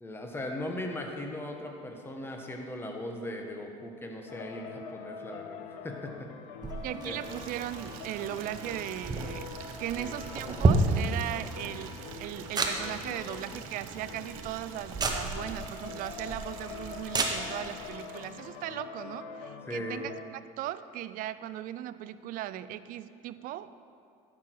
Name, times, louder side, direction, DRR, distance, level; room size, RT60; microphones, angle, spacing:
voice 1, 0.0-6.3 7.0-7.2 10.0-10.1 19.7-20.0, left 1 dB, 15° left, 2 dB, 1.2 m, -38 dB
sound 1, 4.3-20.2, left 6 dB, 80° left, 0.6 m, -45 dB
sound 2, 6.6-17.9, right 3 dB, 25° right, 1.0 m, -33 dB
voice 2, 6.8-9.5 9.8-23.8, right 13 dB, 55° right, 14 dB, 0.4 m, -38 dB
Water tap faucet / Liquid, 7.2-18.8, right 8 dB, 85° right, 0.7 m, -47 dB
12.0 x 6.3 x 4.6 m, 2.5 s
supercardioid pair, 105°, 17 cm